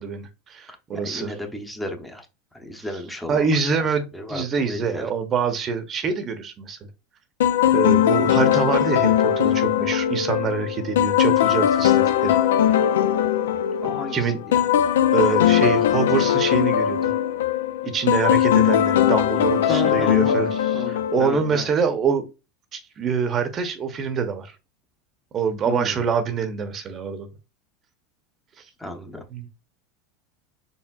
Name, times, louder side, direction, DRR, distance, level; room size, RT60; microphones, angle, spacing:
voice 1, 0.0-1.3 2.8-2.9 3.3-6.8 7.7-12.4 12.7-12.8 14.1-14.4 15.1-17.1 17.8-22.3 22.7-24.6 25.3-27.3 29.3-29.5, right 6 dB, 35° right, 0.8 m, -25 dB
voice 2, 0.9-2.3 2.5-3.5 4.1-5.1 13.8-14.6 19.7-20.4 20.7-21.7 25.7-26.0 28.8-29.3, left 1 dB, 5° left, 0.8 m, -33 dB
sound 1, 7.4-21.6, left 10 dB, 85° left, 0.3 m, -20 dB
4.4 x 3.3 x 2.3 m
hypercardioid pair, 100°, 0 cm